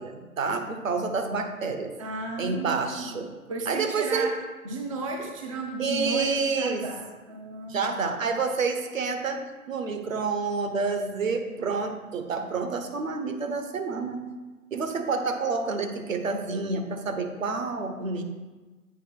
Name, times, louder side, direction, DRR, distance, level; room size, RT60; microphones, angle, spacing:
voice 1, 0.0-1.9 2.4-3.3 3.7-4.3 5.2-5.3 5.8-6.9 7.7-14.2 14.7-18.2, right 4 dB, 65° right, 6 dB, 1.1 m, -28 dB
voice 2, 2.0-3.2 3.5-4.4 4.6-8.1, right 2 dB, 25° right, 2 dB, 0.5 m, -34 dB
8.2 x 4.9 x 4.6 m, 1.2 s
figure-of-eight pair, 130°, 43 cm